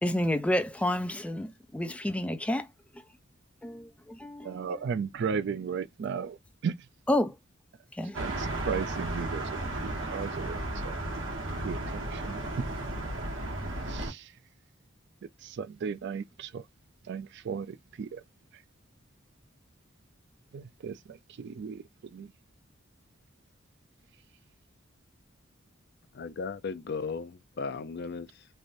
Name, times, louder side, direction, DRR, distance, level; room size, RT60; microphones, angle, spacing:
voice 1, 0.0-2.7 3.6-4.6 7.1-7.4 7.9-8.2, left 1 dB, 5° left, 0.4 m, -29 dB
voice 2, 4.4-6.8 8.2-11.0 11.6-12.6 13.9-14.3 15.4-16.7 17.0-18.2 18.5-18.6 20.5-22.3, right 6 dB, 60° right, 0.4 m, -36 dB
sound 1, 8.1-14.1, right 1 dB, 85° right, 1.3 m, -34 dB
voice 3, 26.1-28.5, left 5 dB, 55° left, 0.5 m, -36 dB
3.3 x 2.5 x 2.5 m
head